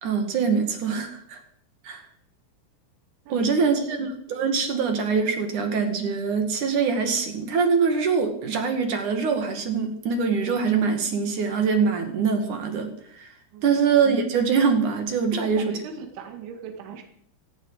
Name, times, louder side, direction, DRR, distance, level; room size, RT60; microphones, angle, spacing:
voice 1, 0.0-1.4 1.8-2.0 3.3-13.3 13.6-15.8, right 5 dB, 50° right, 5 dB, 2.9 m, -24 dB
voice 2, 3.3-3.8 13.5-13.8 15.3-17.0, right 6 dB, 80° right, 4 dB, 4.3 m, -38 dB
17.0 x 16.5 x 4.9 m, 0.66 s
omnidirectional pair, 5.3 m